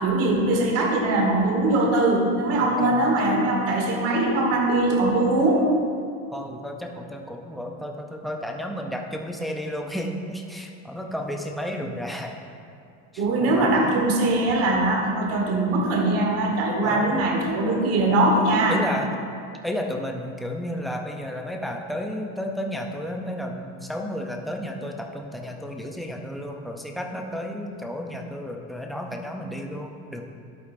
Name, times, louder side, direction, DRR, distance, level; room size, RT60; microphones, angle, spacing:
voice 1, 0.0-5.6 13.2-18.8, right 2 dB, 45° right, 0 dB, 1.3 m, -21 dB
voice 2, 2.6-3.3 6.3-12.4 13.1-13.9 16.8-17.2 18.7-19.1 19.6-30.2, equal, ahead, 1 dB, 0.4 m, -32 dB
11.0 x 8.5 x 2.5 m, 2.4 s
supercardioid pair, 145°, 35 cm